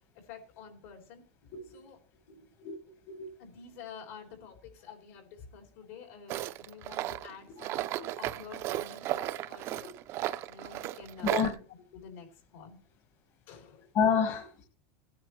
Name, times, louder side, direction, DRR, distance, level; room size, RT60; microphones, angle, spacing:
voice 1, 0.2-1.2 1.5-2.0 2.3-2.5 3.4-7.9 8.2-9.9 10.5-11.6 11.9-12.3 12.5-12.8 13.5-13.9, left 6 dB, 80° left, 3.6 m, -49 dB
Tools, 6.3-11.5, right 14 dB, 45° right, 0.5 m, -35 dB
voice 2, 11.2-11.5 13.9-14.6, left 6 dB, 45° left, 1.3 m, -28 dB
17.0 x 9.6 x 3.1 m
supercardioid pair, 145°, 7 cm